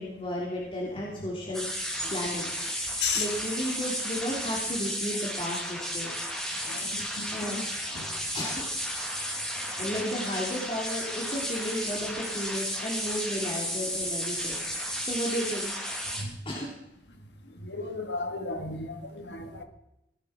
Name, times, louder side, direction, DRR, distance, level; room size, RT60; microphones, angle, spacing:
voice 1, 0.0-1.6 2.1-2.5 3.1-6.1 6.7-6.9 7.3-7.7 8.3-8.7 9.8-14.6 15.0-16.1 16.4-16.7, equal, 30° left, -3 dB, 3.2 m, -33 dB
sound 1, 1.5-16.2, equal, 5° left, 2.7 m, -33 dB
voice 2, 6.7-7.6 8.0-8.1 17.6-19.6, left 4 dB, 85° left, 5 dB, 2.1 m, -34 dB
17.5 x 11.5 x 5.9 m, 0.83 s
head